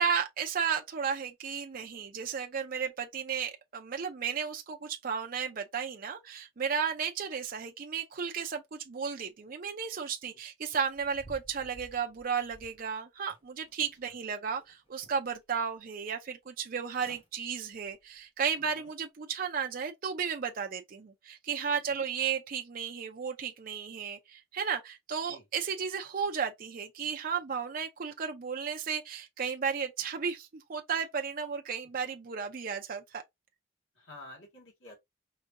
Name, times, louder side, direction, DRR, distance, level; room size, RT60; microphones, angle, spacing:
voice 1, 0.0-33.2, right 6 dB, 45° right, 0.5 m, -34 dB
sound 1, 10.8-12.9 13.3-14.1 14.5-15.4 15.8-15.9 16.6-16.7 16.9-17.3 17.7-18.0 18.5-18.6, right 1 dB, 30° left, 1.3 m, -54 dB
voice 2, 18.6-18.9 21.9-22.0 25.3-25.4 33.9-35.0, left 1 dB, 80° left, 1.9 m, -51 dB
4.9 x 2.7 x 2.5 m
head